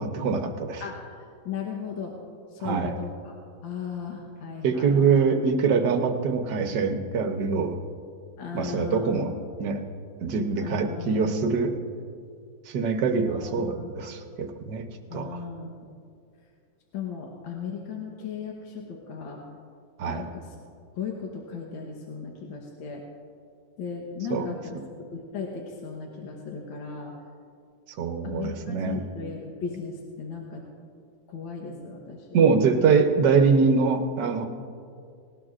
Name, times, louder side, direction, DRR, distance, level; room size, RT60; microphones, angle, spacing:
voice 1, 0.0-0.8 2.6-2.9 4.6-7.8 8.5-9.3 9.6-9.8 10.2-11.7 12.7-14.9 15.1-15.4 20.0-20.3 24.3-24.6 28.0-29.0 32.3-34.5, right 5 dB, 65° right, 5 dB, 1.4 m, -24 dB
voice 2, 0.8-2.2 2.5-3.4 3.6-5.2 8.4-9.1 10.6-11.6 13.3-14.0 15.1-15.7 16.9-19.4 20.0-20.6 20.9-23.0 23.8-27.1 28.2-30.7 31.3-32.4, left 6 dB, 75° left, 0 dB, 1.9 m, -37 dB
19.0 x 18.5 x 2.5 m, 2.3 s
omnidirectional pair, 2.2 m